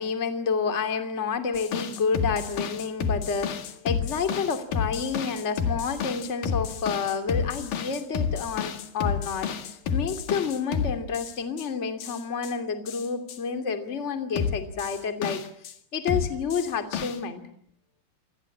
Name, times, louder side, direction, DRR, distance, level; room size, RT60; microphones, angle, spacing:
voice 1, 0.0-15.4 15.9-17.4, left 5 dB, 25° left, 7 dB, 1.8 m, -29 dB
sound 1, 1.6-11.7 12.0-12.5 12.9-13.4 14.4-15.7 16.1-17.2, left 7 dB, 55° left, 3.0 m, -30 dB
28.5 x 24.0 x 8.5 m, 0.66 s
omnidirectional pair, 5.4 m